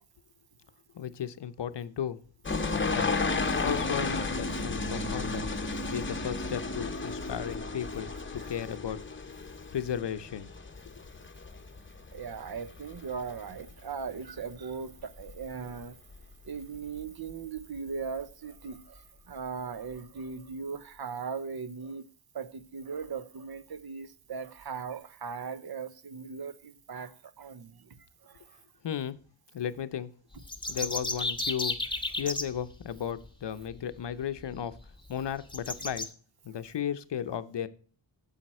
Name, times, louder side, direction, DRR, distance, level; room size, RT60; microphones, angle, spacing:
voice 1, 0.9-2.2 2.7-3.1 3.6-5.5 5.9-9.0 9.7-10.5 28.8-29.2 29.5-30.1 30.7-31.8 32.2-34.7 35.1-36.1 36.4-37.7, left 9 dB, 65° left, 0.8 m, -35 dB
sound 1, 2.4-13.8 14.1-14.6 15.0-15.8 16.1-16.2 17.0-17.1 17.3-17.4, left 3 dB, 25° left, 0.8 m, -33 dB
voice 2, 12.1-16.0 16.4-22.1 22.3-27.9 28.2-28.6 30.7-30.8, right 5 dB, 55° right, 0.8 m, -39 dB
sound 2, 30.3-32.4 34.2-34.3 34.7-34.8 35.5-36.0, left 2 dB, 10° left, 1.0 m, -32 dB
9.1 x 7.2 x 4.2 m
wide cardioid pair, 110°, 46 cm